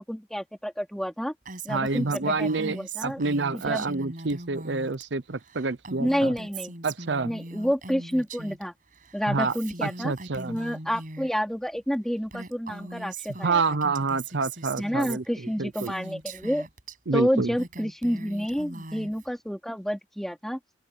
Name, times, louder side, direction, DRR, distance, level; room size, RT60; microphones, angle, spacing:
voice 1, 0.0-1.3 1.6-3.2 3.5-3.9 6.0-6.8 7.2-8.7 9.1-10.1 10.5-13.6 14.8-16.7 17.1-20.6, equal, ahead, 3.7 m, -29 dB
Female speech woman speaking, 1.5-5.1 5.3-8.6 8.9-11.3 11.9-12.0 12.3-17.0 17.4-19.3, right 3 dB, 45° right, 6.9 m, -40 dB
voice 2, 1.7-6.3 6.8-7.3 9.3-9.5 9.8-10.6 13.4-15.9 17.1-17.5, right 4 dB, 75° right, 0.8 m, -28 dB
open air
head